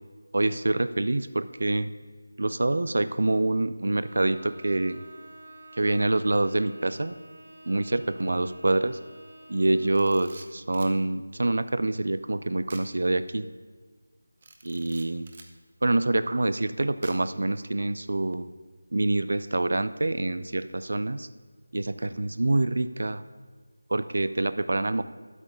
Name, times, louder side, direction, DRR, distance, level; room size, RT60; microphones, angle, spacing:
voice 1, 0.3-1.9 2.4-5.0 5.8-7.2 7.7-9.0 9.5-13.5 14.6-15.3 15.8-18.5 18.9-21.3 21.7-23.2 23.9-25.0, right 2 dB, 65° right, 13 dB, 0.6 m, -26 dB
Bowed string instrument, 4.0-10.5, right 1 dB, 50° right, 1.6 m, -50 dB
Camera, 9.8-11.0 12.7-12.9 13.3-13.4 14.4-15.5 17.0-17.4, right 3 dB, 30° right, 0.9 m, -49 dB
11.0 x 8.2 x 5.4 m, 1.5 s
figure-of-eight pair, 175°, 0 cm